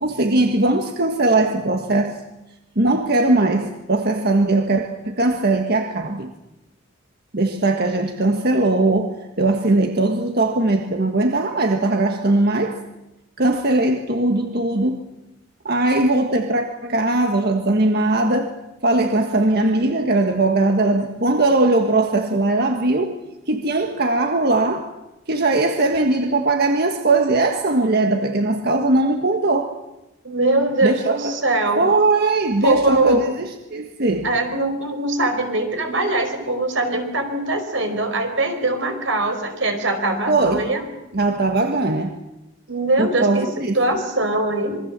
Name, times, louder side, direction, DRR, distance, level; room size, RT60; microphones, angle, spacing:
voice 1, 0.0-2.2 2.7-6.3 7.3-12.8 13.4-15.1 15.6-18.5 18.8-23.2 23.5-24.9 25.3-29.7 30.8-31.4 31.8-34.3 40.3-40.7 41.1-42.1 43.0-43.8, right 2 dB, 55° right, 1.6 m, -20 dB
voice 2, 30.2-31.9 32.6-33.3 34.2-40.8 42.7-43.5 43.7-44.8, right 2 dB, 85° right, 4.9 m, -21 dB
27.0 x 22.5 x 7.5 m
head